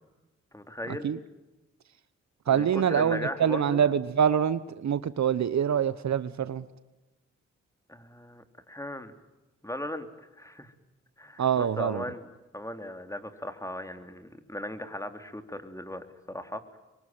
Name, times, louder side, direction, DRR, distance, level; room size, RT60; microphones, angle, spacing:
voice 1, 0.5-1.1 2.5-3.9 7.9-9.1 9.6-10.1 10.4-10.7 11.2-12.3 12.5-16.8, left 1 dB, 10° left, 7 dB, 3.7 m, -37 dB
voice 2, 2.5-6.6 11.4-12.0, right 8 dB, 65° right, 15 dB, 1.1 m, -25 dB
25.0 x 23.5 x 9.2 m, 1.1 s
supercardioid pair, 40°, 30 cm